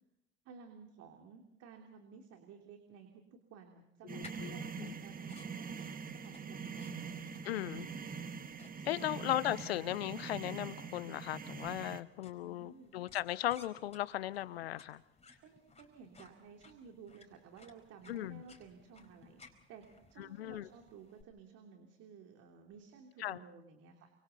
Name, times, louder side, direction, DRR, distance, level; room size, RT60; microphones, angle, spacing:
voice 1, 0.4-5.7 6.1-6.9 7.4-8.0 8.8-9.2 12.4-12.9 15.4-19.4 19.7-19.8 20.1-24.1, right 6 dB, 55° right, 3 dB, 3.1 m, -55 dB
voice 2, 4.1-4.9 7.5-7.9 8.8-15.0 18.1-18.4 20.2-20.7 23.2-23.4, left 14 dB, 80° left, 18 dB, 0.9 m, -37 dB
sound 1, 4.1-12.0, right 6 dB, 30° right, 1.7 m, -44 dB
sound 2, 4.2-21.2, left 4 dB, 20° left, 4.6 m, -61 dB
29.0 x 26.0 x 4.1 m, 0.82 s
hypercardioid pair, 75°, 30 cm